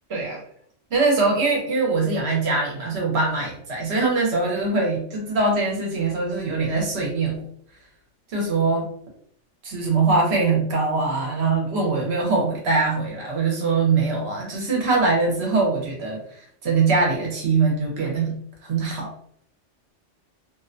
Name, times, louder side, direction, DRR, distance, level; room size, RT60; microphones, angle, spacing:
voice 1, 0.1-0.4 0.9-7.4 8.3-8.9 9.6-16.2 16.6-19.1, right 3 dB, 65° right, -1 dB, 0.9 m, -22 dB
2.5 x 2.1 x 2.5 m, 0.66 s
omnidirectional pair, 1.3 m